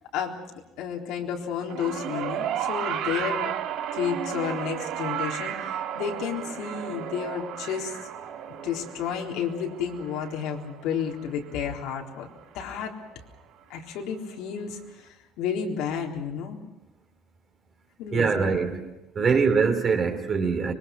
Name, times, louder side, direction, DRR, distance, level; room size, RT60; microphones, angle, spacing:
voice 1, 0.8-3.5 3.9-8.0 8.6-12.3 12.5-13.0 13.7-16.6 18.0-18.3 19.2-19.4, left 7 dB, 75° left, 1 dB, 3.9 m, -31 dB
sound 1, 1.7-12.1 13.2-13.3, right 10 dB, 60° right, 2.0 m, -33 dB
voice 2, 18.1-18.8 19.1-20.7, right 5 dB, 30° right, 6 dB, 3.0 m, -23 dB
26.0 x 23.0 x 6.0 m, 0.99 s
cardioid pair, 170°, 0 cm